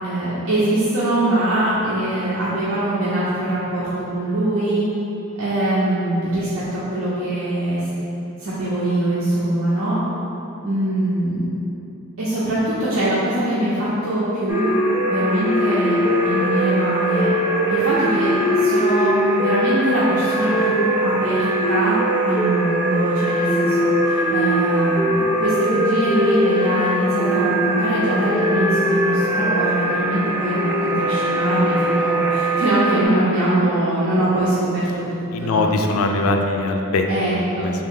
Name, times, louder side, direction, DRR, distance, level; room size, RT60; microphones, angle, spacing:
voice 1, 0.0-4.8 5.4-7.8 8.4-10.0 10.6-11.5 12.2-14.7 15.1-17.3 17.7-22.0 22.2-35.7 37.1-37.7, right 1 dB, 85° right, -10 dB, 0.6 m, -22 dB
sound 1, 14.5-33.1, equal, 10° right, 0.4 m, -21 dB
voice 2, 35.3-37.0 37.3-37.7, left 3 dB, 70° left, 4 dB, 0.3 m, -21 dB
3.5 x 2.7 x 3.7 m, 3.0 s
head